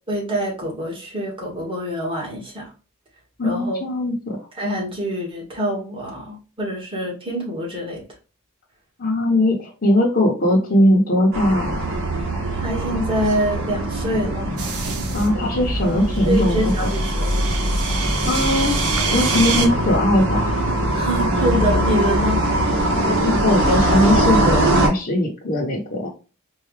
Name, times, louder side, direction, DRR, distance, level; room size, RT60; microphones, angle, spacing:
voice 1, 0.1-2.7 3.4-3.8 4.6-8.0 12.6-14.6 15.8-17.5 20.9-22.4, equal, 25° right, 1.8 m, -25 dB
voice 2, 3.4-4.5 9.0-11.8 15.1-16.9 18.2-18.8 19.1-20.6 23.0-26.1, left 1 dB, 45° left, 1.0 m, -20 dB
sound 1, 11.3-24.9, right 1 dB, 60° right, 1.5 m, -22 dB
sound 2, 14.6-15.3 16.0-19.7, right 4 dB, 85° right, 0.9 m, -26 dB
4.6 x 2.6 x 3.2 m
head